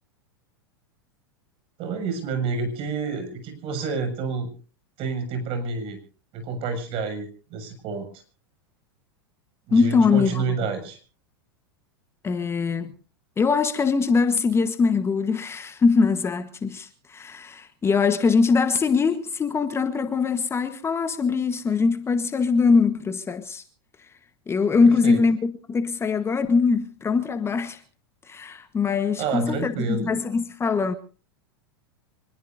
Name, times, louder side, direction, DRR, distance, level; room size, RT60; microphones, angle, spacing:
voice 1, 1.8-4.5 5.0-6.0 6.3-8.1 9.7-11.0 24.8-25.2 28.9-30.1, right 4 dB, 45° right, 7.1 m, -29 dB
voice 2, 9.7-10.3 12.2-12.9 13.4-23.6 24.5-27.8 28.3-30.9, left 4 dB, 20° left, 1.2 m, -22 dB
25.5 x 20.5 x 2.7 m
hypercardioid pair, 105°, 13 cm